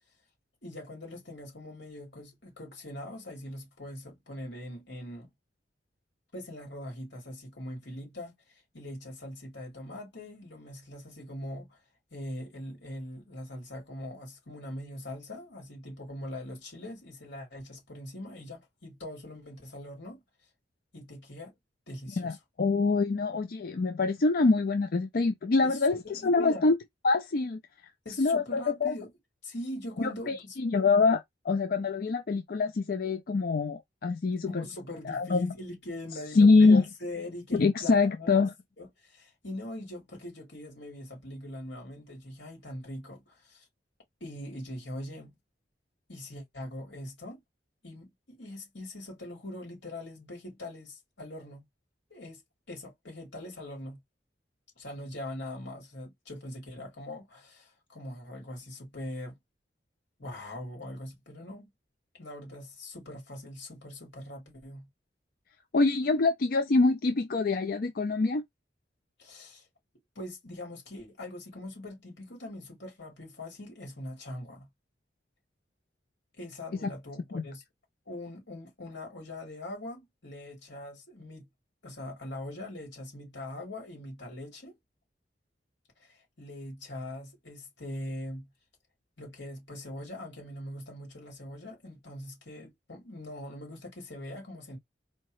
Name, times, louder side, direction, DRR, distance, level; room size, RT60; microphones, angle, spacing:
voice 1, 0.6-5.3 6.3-11.8 12.1-20.2 20.9-21.5 21.9-22.4 25.6-25.8 26.0-26.7 28.0-29.1 29.4-30.6 34.5-38.5 38.8-43.7 44.2-45.3 46.1-47.4 47.8-51.6 52.1-52.4 52.7-54.0 54.8-59.4 60.2-61.7 62.1-64.9 69.2-69.7 70.1-74.7 76.3-77.6 78.1-81.5 81.8-84.8 86.0-88.5 89.2-94.8, left 1 dB, 90° left, 3.1 m, -42 dB
voice 2, 22.2-26.8 27.0-27.6 28.2-28.9 30.0-34.6 35.1-35.5 36.4-36.8 37.5-38.5 65.7-68.4 77.3-77.4, left 3 dB, 55° left, 0.5 m, -25 dB
4.4 x 2.8 x 3.1 m
head